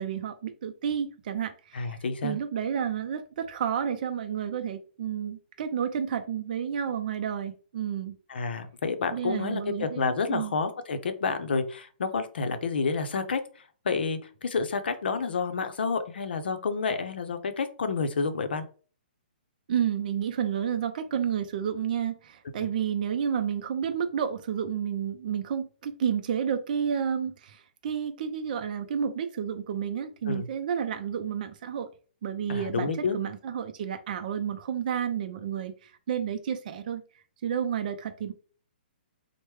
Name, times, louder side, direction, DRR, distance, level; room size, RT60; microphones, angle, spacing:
voice 1, 0.0-2.0 2.2-8.2 9.1-10.5 19.7-31.9 32.2-37.0 37.4-38.3, right 8 dB, 50° right, 7 dB, 0.4 m, -31 dB
voice 2, 1.7-2.4 8.3-18.6 22.6-22.7 30.3-30.5 32.5-33.2, left 4 dB, 75° left, 9 dB, 0.6 m, -29 dB
3.2 x 2.1 x 3.1 m, 0.40 s
hypercardioid pair, 150°, 6 cm